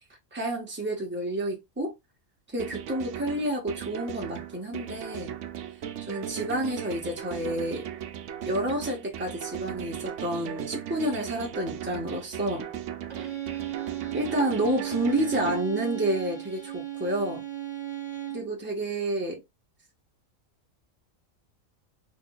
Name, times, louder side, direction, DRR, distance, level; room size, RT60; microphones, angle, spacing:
voice 1, 0.3-1.9 2.5-5.3 6.1-7.9 8.4-12.7 14.1-17.4 18.3-19.4, right 1 dB, 10° right, 1.1 m, -29 dB
sound 1, 2.6-15.6, right 10 dB, 70° right, 0.9 m, -37 dB
Bowed string instrument, 13.1-18.6, right 13 dB, 25° right, 0.7 m, -35 dB
3.1 x 2.5 x 3.8 m
omnidirectional pair, 1.4 m